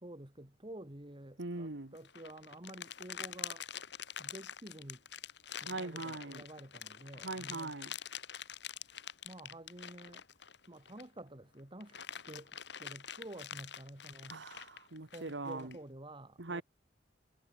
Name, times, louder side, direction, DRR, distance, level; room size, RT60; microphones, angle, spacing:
voice 1, 0.0-3.6 4.2-5.0 5.7-7.8 9.2-10.2 10.7-14.4 15.1-16.6, right 1 dB, 30° right, 2.9 m, -50 dB
voice 2, 1.4-1.9 5.7-6.4 7.2-7.9 14.3-15.8 16.4-16.6, right 3 dB, 75° right, 1.6 m, -41 dB
sound 1, 1.9-11.2 11.6-15.8, left 9 dB, 70° left, 3.2 m, -46 dB
head